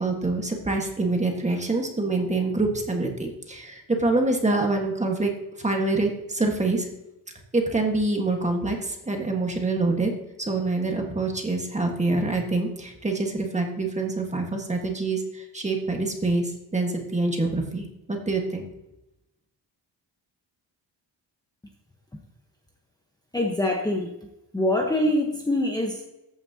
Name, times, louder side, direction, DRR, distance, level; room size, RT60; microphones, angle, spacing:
voice 1, 0.0-5.3 5.6-6.9 7.5-10.1 10.4-18.7, right 2 dB, 15° right, 2 dB, 1.5 m, -26 dB
voice 2, 23.3-24.1 24.5-26.0, left 1 dB, 10° left, 0 dB, 1.0 m, -24 dB
13.5 x 9.5 x 2.8 m, 0.93 s
wide cardioid pair, 175°, 43 cm